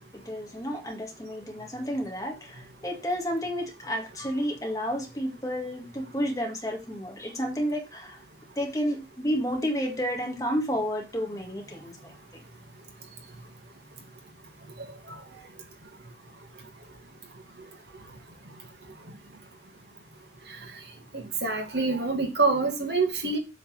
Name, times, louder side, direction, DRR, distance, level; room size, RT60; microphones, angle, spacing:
voice 1, 0.3-8.2 8.6-12.1, equal, 20° left, 2 dB, 1.9 m, -31 dB
voice 2, 21.4-23.4, right 3 dB, 75° right, 3 dB, 2.1 m, -25 dB
7.9 x 4.1 x 6.5 m, 0.27 s
head